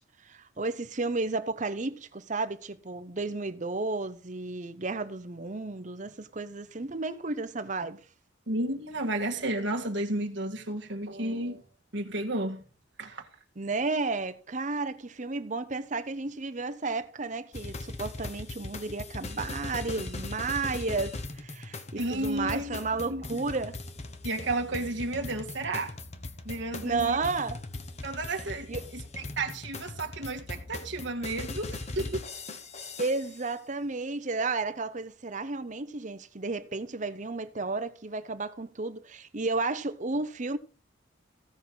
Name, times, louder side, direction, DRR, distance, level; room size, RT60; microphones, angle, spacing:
voice 1, 0.2-8.0 13.6-23.8 26.8-27.6 28.7-28.9 33.0-40.6, right 3 dB, 35° right, 0.8 m, -32 dB
voice 2, 8.5-11.6 11.9-12.6 13.0-13.3 22.0-23.4 24.2-26.0 26.4-27.2 28.0-32.3, right 2 dB, 60° right, 1.8 m, -32 dB
sound 1, 17.5-33.4, left 2 dB, 30° left, 1.1 m, -40 dB
16.0 x 5.5 x 6.2 m
head